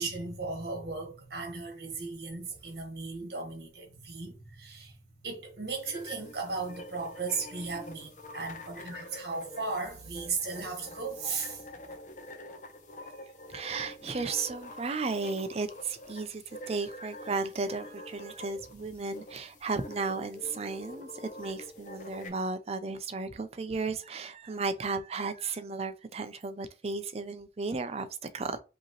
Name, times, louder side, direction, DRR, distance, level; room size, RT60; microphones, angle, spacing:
voice 1, 0.0-11.6, right 4 dB, 65° right, 1.5 m, -36 dB
sound 1, 5.7-22.3, left 1 dB, 45° left, 0.8 m, -46 dB
voice 2, 13.5-28.1 28.3-28.6, right 4 dB, 35° right, 0.5 m, -34 dB
5.2 x 2.9 x 3.0 m
head